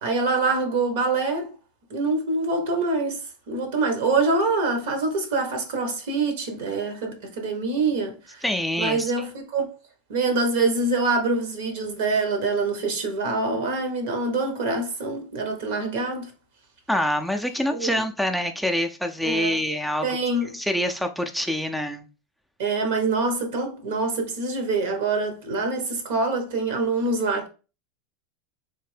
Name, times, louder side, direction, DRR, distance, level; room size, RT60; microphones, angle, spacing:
voice 1, 0.0-1.5 1.9-3.2 3.5-8.4 8.8-9.7 10.1-16.3 17.7-18.0 19.2-19.6 20.0-20.5 22.6-27.5, right 3 dB, 70° right, 1.0 m, -25 dB
voice 2, 8.4-9.1 16.9-20.1 20.5-22.1, equal, ahead, 0.4 m, -25 dB
3.4 x 2.6 x 3.3 m
hypercardioid pair, 95°, 0 cm